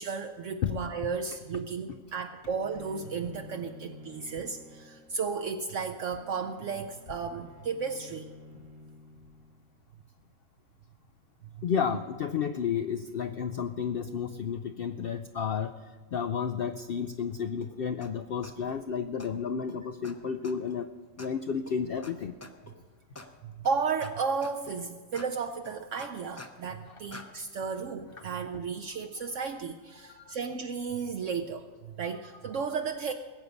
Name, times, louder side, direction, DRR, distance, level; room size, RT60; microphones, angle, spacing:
voice 1, 0.0-8.3 11.6-11.7 23.4-33.1, right 5 dB, 65° right, 5 dB, 0.9 m, -34 dB
Bowed string instrument, 2.6-9.7, left 1 dB, 30° right, 1.0 m, -51 dB
voice 2, 11.6-20.9 21.2-22.3 30.0-30.4, left 7 dB, 75° left, 9 dB, 0.5 m, -32 dB
sound 1, 17.6-17.7 18.0-18.1 18.4-18.8 19.2-19.3 19.7-19.8 20.0-20.1 20.4-20.8 21.2-21.3 21.7-21.8 22.0-22.1 22.4-22.7 23.2-23.3 23.6-24.1 24.4-24.8 25.1-25.3 25.6-26.7 27.1-27.3, left 2 dB, 15° left, 0.5 m, -46 dB
20.0 x 8.1 x 5.2 m, 1.4 s
omnidirectional pair, 1.5 m